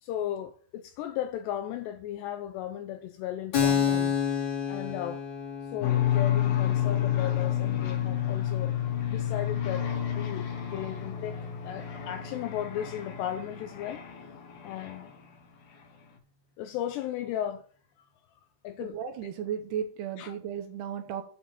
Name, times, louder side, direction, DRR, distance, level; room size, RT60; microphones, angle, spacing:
voice 1, 0.0-4.2 4.7-5.2 5.7-8.8 9.1-9.9 10.2-11.4 11.6-14.0 14.6-15.1 16.6-17.6 18.6-19.0 20.2-20.4, left 11 dB, 85° left, 2.5 m, -35 dB
Keyboard (musical), 3.5-10.8, left 7 dB, 45° left, 3.9 m, -32 dB
sound 1, 5.8-15.4, left 11 dB, 60° left, 3.2 m, -30 dB
voice 2, 18.8-21.2, right 8 dB, 75° right, 2.7 m, -35 dB
9.1 x 4.8 x 7.2 m
omnidirectional pair, 5.4 m